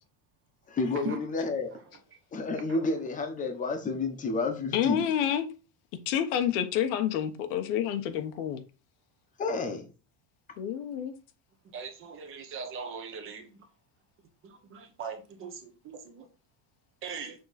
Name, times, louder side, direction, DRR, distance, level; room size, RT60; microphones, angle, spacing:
voice 1, 0.7-1.7 2.3-5.1 9.4-9.9, left 3 dB, 20° left, 1.0 m, -30 dB
voice 2, 4.7-5.5 6.1-8.6 10.6-11.1, left 10 dB, 85° left, 1.3 m, -28 dB
voice 3, 11.7-13.4 14.7-15.5 15.9-16.2 17.0-17.3, right 4 dB, 30° right, 1.0 m, -39 dB
6.8 x 3.9 x 4.1 m
cardioid pair, 175°, 42 cm